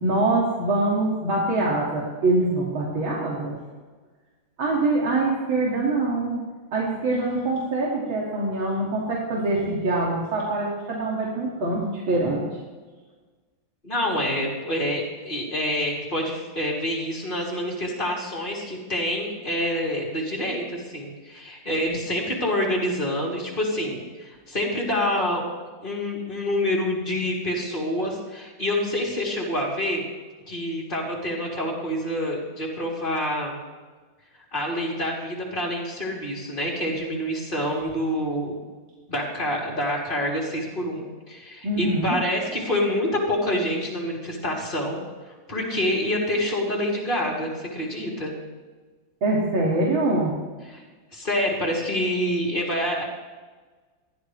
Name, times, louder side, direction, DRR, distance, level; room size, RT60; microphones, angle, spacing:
voice 1, 0.0-3.6 4.6-6.4 6.7-12.4 41.6-42.2 49.2-50.4, right 2 dB, 90° right, -5 dB, 3.2 m, -24 dB
voice 2, 13.8-25.4 25.8-30.1 30.5-33.6 34.5-38.5 39.1-45.0 45.3-48.3 50.7-50.8 51.1-53.0, left 1 dB, 25° left, -3 dB, 3.5 m, -27 dB
20.0 x 14.5 x 3.4 m, 1.4 s
omnidirectional pair, 2.1 m